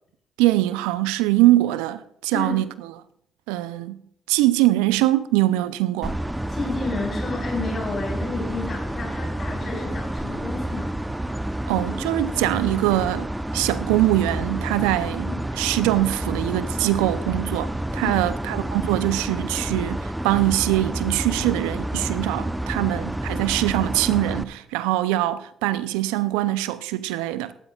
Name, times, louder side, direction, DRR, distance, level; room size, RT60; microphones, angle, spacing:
voice 1, 0.4-2.7 3.5-4.0 4.3-6.1 11.7-27.5, right 16 dB, 80° right, 0.5 m, -23 dB
sound 1, 6.0-24.4, right 1 dB, 10° right, 0.8 m, -29 dB
voice 2, 6.5-10.9 15.2-15.4 18.0-18.2, left 3 dB, 40° left, 4.4 m, -31 dB
sound 2, 9.6-10.8 11.1-13.7 14.1-14.2 14.3-18.8 19.2-23.2, left 3 dB, 80° left, 2.3 m, -50 dB
18.0 x 13.0 x 2.4 m
hypercardioid pair, 45°, 0 cm